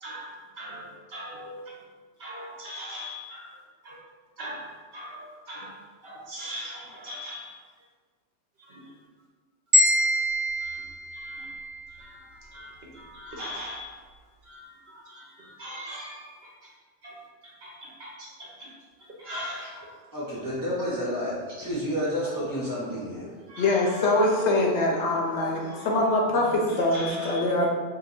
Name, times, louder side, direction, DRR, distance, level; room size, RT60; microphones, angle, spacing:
voice 1, 0.0-1.7 2.2-4.0 4.4-5.7 6.0-7.7 8.6-8.9 10.0-10.1 10.6-10.8 11.1-11.5 11.9-14.0 14.4-16.7 17.0-17.2 17.6-18.7 19.0-20.0 21.5-21.7 23.5-24.4 25.4-25.9 26.7-27.5, equal, 60° right, -4 dB, 0.9 m, -41 dB
sound 1, 9.7-11.9, left 1 dB, 85° right, 1.2 m, -24 dB
voice 2, 20.1-23.3 25.1-25.9 26.3-26.5 27.0-27.1 27.4-27.5, equal, 20° right, -7 dB, 0.8 m, -31 dB
voice 3, 23.6-27.7, left 2 dB, 70° left, -1 dB, 0.8 m, -23 dB
2.7 x 2.6 x 4.1 m, 1.5 s
omnidirectional pair, 1.3 m